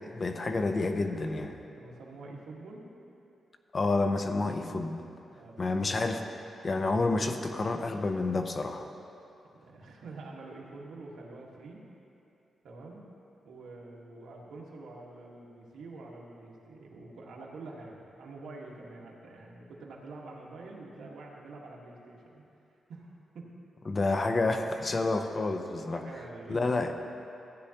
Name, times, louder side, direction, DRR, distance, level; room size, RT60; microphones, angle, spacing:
voice 1, 0.1-1.6 3.7-5.0 5.6-8.9 23.9-26.0 26.5-26.9, left 3 dB, 30° left, 6 dB, 0.6 m, -29 dB
voice 2, 1.7-3.0 5.3-5.8 9.5-11.8 12.6-13.1 13.4-22.4 22.9-23.6 25.9-26.8, right 2 dB, 85° right, -2 dB, 1.5 m, -46 dB
15.0 x 9.5 x 2.9 m, 2.8 s
wide cardioid pair, 135°, 0 cm